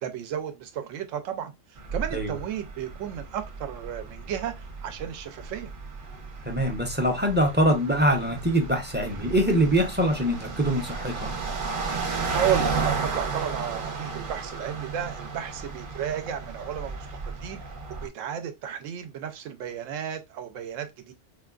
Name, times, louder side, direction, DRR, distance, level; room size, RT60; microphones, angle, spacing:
voice 1, 0.0-5.7 12.3-17.6 17.9-21.1, right 9 dB, 80° right, 1.0 m, -33 dB
sound 1, 1.8-18.1, right 4 dB, 50° right, 0.9 m, -34 dB
voice 2, 6.5-11.3, equal, 10° right, 0.5 m, -24 dB
4.4 x 2.3 x 2.3 m
omnidirectional pair, 1.3 m